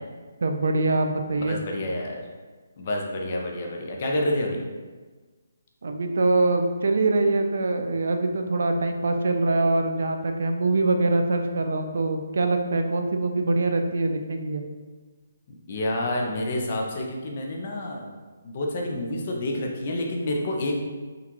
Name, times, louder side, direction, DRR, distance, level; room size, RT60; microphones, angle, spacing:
voice 1, 0.4-1.6 5.8-14.6, right 2 dB, 55° right, 5 dB, 0.4 m, -24 dB
voice 2, 1.3-2.2 2.8-4.7 15.5-18.1 18.4-20.8, left 1 dB, 30° left, 0 dB, 0.5 m, -28 dB
3.7 x 2.4 x 4.4 m, 1.4 s
hypercardioid pair, 180°, 0 cm